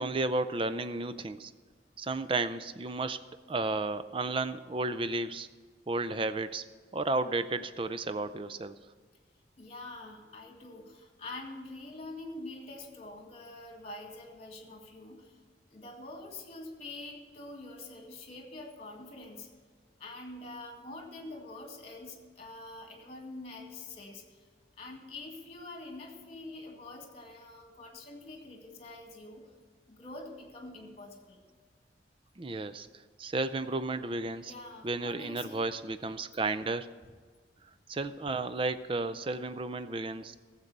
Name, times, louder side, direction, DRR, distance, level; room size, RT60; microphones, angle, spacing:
voice 1, 0.0-1.5 2.0-3.2 3.5-5.5 5.9-6.6 6.9-8.8 32.4-32.9 33.2-34.5 34.8-36.9 37.9-40.4, right 2 dB, 30° right, 13 dB, 0.4 m, -33 dB
voice 2, 9.6-15.4 15.7-19.5 20.0-24.4 24.8-29.5 29.9-31.4 34.4-35.6, left 2 dB, 35° left, 3 dB, 1.9 m, -45 dB
15.0 x 7.4 x 6.7 m, 1.5 s
head